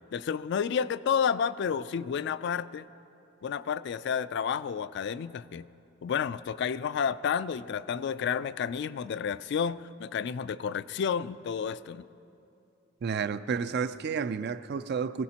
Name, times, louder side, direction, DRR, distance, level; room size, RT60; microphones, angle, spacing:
voice 1, 0.1-2.9 3.4-5.7 6.0-12.1, left 7 dB, 60° left, 15 dB, 0.3 m, -30 dB
voice 2, 13.0-15.2, right 6 dB, 55° right, 13 dB, 0.4 m, -31 dB
22.0 x 16.0 x 2.9 m, 2.7 s
head